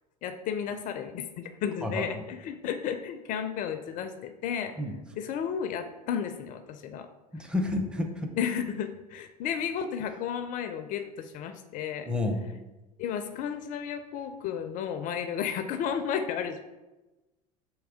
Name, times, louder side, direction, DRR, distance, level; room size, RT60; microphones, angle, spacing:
voice 1, 0.2-4.7 5.2-7.1 8.4-12.1 13.0-16.6, left 8 dB, 45° left, 9 dB, 0.4 m, -33 dB
voice 2, 7.3-8.3 12.1-12.4, left 2 dB, 5° right, 4 dB, 0.6 m, -30 dB
3.5 x 3.0 x 4.8 m, 1.1 s
hypercardioid pair, 75°, 19 cm